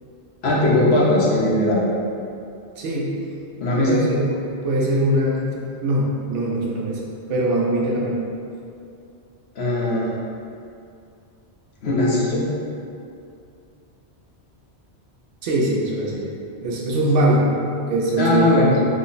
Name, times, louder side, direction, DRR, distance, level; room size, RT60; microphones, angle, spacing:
voice 1, 0.4-1.8 3.6-4.0 9.5-10.1 11.8-12.5 18.2-18.8, left 1 dB, 65° left, -5 dB, 0.9 m, -19 dB
voice 2, 2.8-3.1 3.8-4.4 4.6-7.0 7.3-8.2 15.4-16.3 16.6-17.6 17.9-18.9, right 1 dB, 90° right, -3 dB, 1.0 m, -21 dB
3.1 x 2.1 x 3.8 m, 2.5 s
omnidirectional pair, 1.2 m